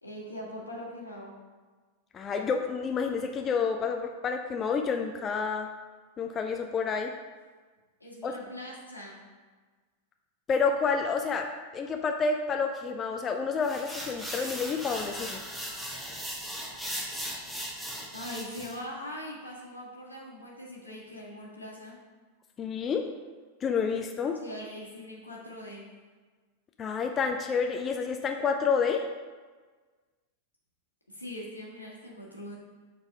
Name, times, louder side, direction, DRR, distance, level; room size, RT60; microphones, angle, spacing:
voice 1, 0.0-1.3 8.0-9.2 18.1-22.0 24.4-25.9 31.1-32.5, left 1 dB, 85° left, -4 dB, 1.7 m, -41 dB
voice 2, 2.1-5.7 6.2-7.1 8.2-8.3 10.5-11.5 11.7-15.4 22.6-23.0 23.6-24.4 26.8-29.0, left 5 dB, 25° left, 4 dB, 0.5 m, -29 dB
sound 1, 13.6-18.8, equal, 5° right, 1.2 m, -38 dB
6.9 x 4.1 x 5.2 m, 1.4 s
figure-of-eight pair, 90°, 0 cm